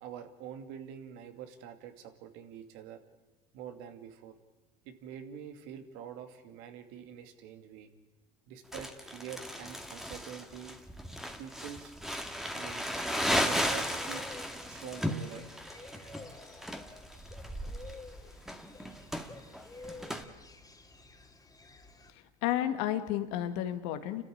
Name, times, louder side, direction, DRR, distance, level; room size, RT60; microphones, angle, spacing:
voice 1, 0.0-3.0 3.5-4.3 4.8-7.9 8.5-10.8 11.4-11.9 12.5-12.8 13.3-14.3 14.7-15.5, right 8 dB, 70° right, 7 dB, 2.4 m, -45 dB
Crumpling crinkling, 8.7-20.2, equal, ahead, 2.1 m, -35 dB
sound 1, 12.9-22.1, left 3 dB, 20° left, 2.9 m, -51 dB
voice 2, 22.1-24.2, left 12 dB, 75° left, 8 dB, 2.0 m, -32 dB
29.5 x 13.0 x 8.8 m, 1.1 s
hypercardioid pair, 75°, 20 cm